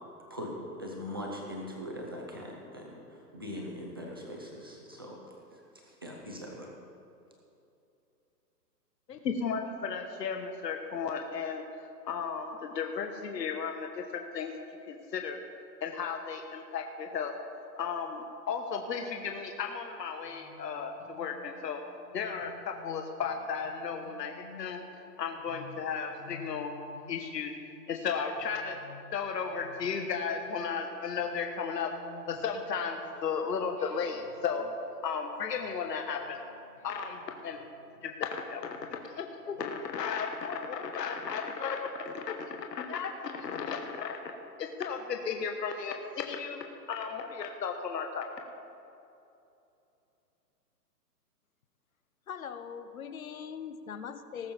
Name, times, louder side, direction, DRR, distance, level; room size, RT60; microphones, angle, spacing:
voice 1, 0.8-6.7, left 1 dB, 15° right, -2 dB, 0.6 m, -41 dB
voice 2, 9.1-14.5 14.9-15.4 15.8-17.3 17.8-21.8 22.1-26.7 27.1-27.5 27.9-28.8 29.1-31.9 32.3-34.7 35.0-36.4 36.8-37.7 38.0-44.2 44.6-48.4, left 6 dB, 70° left, 3 dB, 1.4 m, -35 dB
sound 1, 20.2-33.3 33.8-39.7, left 5 dB, 20° left, 0.9 m, -54 dB
voice 3, 52.3-54.5, left 7 dB, 55° left, 11 dB, 0.8 m, -41 dB
19.0 x 6.9 x 4.4 m, 2.8 s
hypercardioid pair, 170°, 50 cm